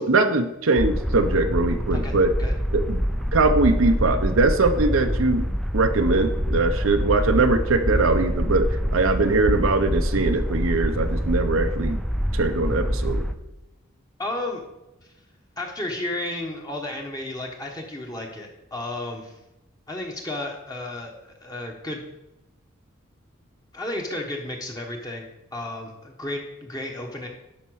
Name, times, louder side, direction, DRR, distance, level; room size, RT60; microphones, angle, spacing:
voice 1, 0.0-2.4 2.7-3.0 3.3-5.5 5.7-12.0 12.3-13.2, right 3 dB, 85° right, 7 dB, 0.7 m, -21 dB
sound 1, 0.8-13.3, equal, ahead, 0.4 m, -25 dB
voice 2, 14.2-14.6 15.0-15.1 15.6-19.4 19.9-22.0 23.7-27.3, left 1 dB, 20° left, 1 dB, 1.1 m, -33 dB
11.0 x 4.3 x 6.3 m, 0.94 s
head